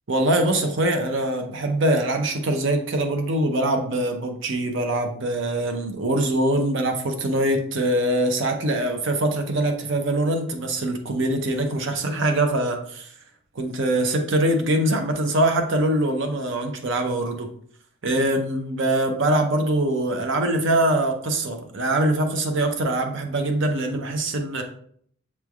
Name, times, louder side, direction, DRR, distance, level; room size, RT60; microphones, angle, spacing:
voice 1, 0.1-13.1 13.6-17.5 18.0-24.6, right 1 dB, 55° right, 4 dB, 0.6 m, -23 dB
6.9 x 3.2 x 2.3 m, 0.63 s
head